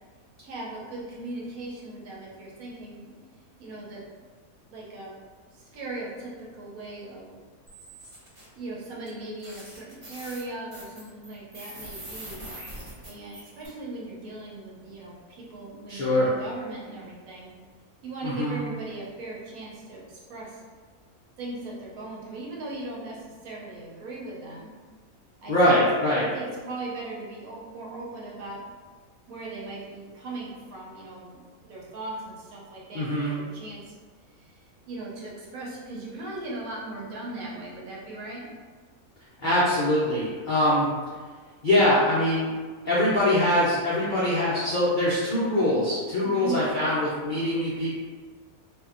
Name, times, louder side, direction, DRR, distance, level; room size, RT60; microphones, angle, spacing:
voice 1, 0.4-3.1 3.6-4.0 4.7-5.2 5.5-7.4 8.5-12.5 13.0-17.5 18.0-20.6 21.4-24.7 25.4-25.7 26.3-28.6 29.3-33.9 34.4-38.4 46.2-46.6, right 2 dB, 75° right, -5 dB, 1.1 m, -38 dB
sound 1, 7.7-8.5 9.1-9.2 9.4-13.7, right 1 dB, 55° right, 0.3 m, -43 dB
voice 2, 15.9-16.3 18.2-18.6 25.5-26.3 32.9-33.3 39.4-40.9 41.6-42.5 42.9-47.9, left 1 dB, 75° left, -9 dB, 0.4 m, -23 dB
2.7 x 2.2 x 2.4 m, 1.5 s
omnidirectional pair, 1.6 m